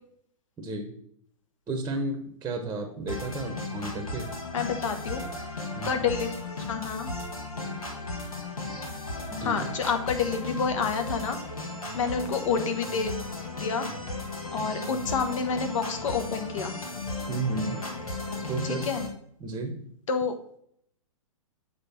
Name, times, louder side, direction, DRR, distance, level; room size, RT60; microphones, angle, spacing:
voice 1, 0.6-0.9 1.7-4.3 5.7-6.0 9.3-9.7 17.3-17.8 18.5-18.8 19.4-19.9, right 2 dB, 15° right, 3 dB, 0.9 m, -32 dB
sound 1, 3.1-19.1, left 2 dB, 85° left, 1.9 m, -35 dB
voice 2, 4.5-5.2 5.8-7.1 9.4-11.4 11.9-13.1 13.5-13.9 14.5-16.8 18.6-19.0 20.1-20.3, left 5 dB, 65° left, 7 dB, 1.2 m, -29 dB
7.6 x 3.3 x 5.7 m, 0.67 s
hypercardioid pair, 120°, 18 cm